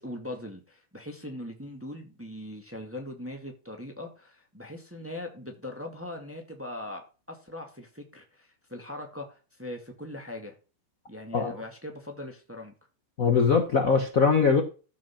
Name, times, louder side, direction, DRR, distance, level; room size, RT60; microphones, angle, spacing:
voice 1, 0.0-10.5 11.1-12.7, left 1 dB, 5° right, 3 dB, 1.3 m, -40 dB
voice 2, 13.2-14.6, left 5 dB, 65° left, 4 dB, 0.8 m, -21 dB
14.0 x 5.2 x 5.9 m, 0.35 s
omnidirectional pair, 3.5 m